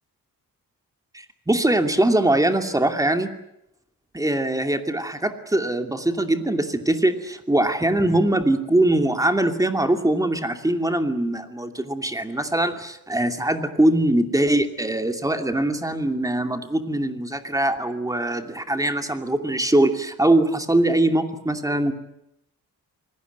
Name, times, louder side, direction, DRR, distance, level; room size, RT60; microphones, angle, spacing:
voice 1, 1.1-3.3 4.1-21.9, right 1 dB, 10° right, 6 dB, 2.6 m, -22 dB
26.5 x 20.0 x 9.3 m, 0.80 s
wide cardioid pair, 130°, 34 cm